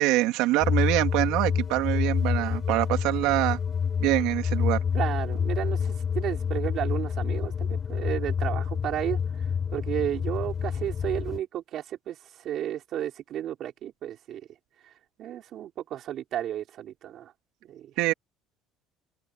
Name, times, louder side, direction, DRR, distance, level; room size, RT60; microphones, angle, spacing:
voice 1, 0.0-3.6 4.0-4.8 18.0-18.1, right 18 dB, 75° right, 2.6 m, -25 dB
sound 1, 0.6-11.4, left 7 dB, 30° left, 4.4 m, -28 dB
voice 2, 4.9-14.4 14.8-14.9 15.2-17.3 17.6-17.9, right 11 dB, 50° right, 4.3 m, -33 dB
cardioid pair, 145°, 0 cm